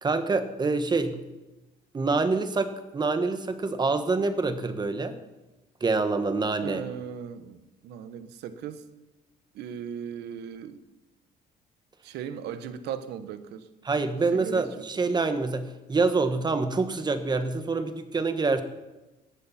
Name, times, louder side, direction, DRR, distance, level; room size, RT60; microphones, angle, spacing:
voice 1, 0.0-1.2 1.9-5.2 5.8-6.8 13.8-18.6, right 3 dB, 25° right, 9 dB, 1.4 m, -26 dB
voice 2, 6.6-8.8 9.5-10.8 12.0-13.6 14.3-14.6, right 8 dB, 80° right, 11 dB, 1.3 m, -37 dB
18.5 x 14.5 x 4.4 m, 1.1 s
cardioid pair, 110°, 17 cm